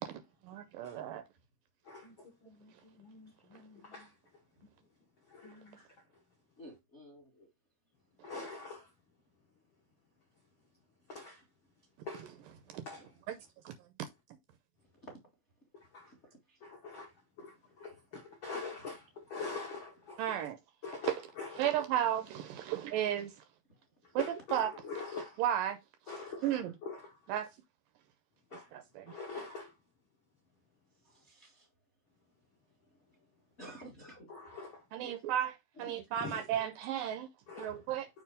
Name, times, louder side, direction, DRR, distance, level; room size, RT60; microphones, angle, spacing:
voice 1, 0.0-1.2 12.7-12.9 13.3-13.4 13.7-13.8 20.2-20.6 21.1-21.2 21.6-23.4 24.2-24.3 24.5-24.7 25.4-25.8 26.4-26.7 27.3-27.5 28.5-29.2 34.9-35.5 35.8-37.3 37.6-38.1, right 11 dB, 80° right, 2.0 m, -34 dB
voice 2, 1.8-4.1 5.3-5.9 8.2-8.9 11.1-11.4 12.0-12.3 12.8-13.0 15.9-16.1 16.6-17.1 17.4-20.4 20.8-21.8 24.2-25.4 26.1-27.2 28.5-28.7 29.1-29.7 34.3-34.8 36.2-36.4 37.5-37.7, left 4 dB, 70° left, 1.2 m, -44 dB
voice 3, 6.6-7.5 8.5-8.6 15.0-15.1 16.1-16.2 16.5-16.6 17.4-17.5 26.1-26.6 31.0-31.7 33.6-34.3 35.0-35.2 35.8-36.4 37.7-37.8, equal, 45° left, 0.8 m, -52 dB
6.7 x 3.0 x 5.1 m
omnidirectional pair, 4.3 m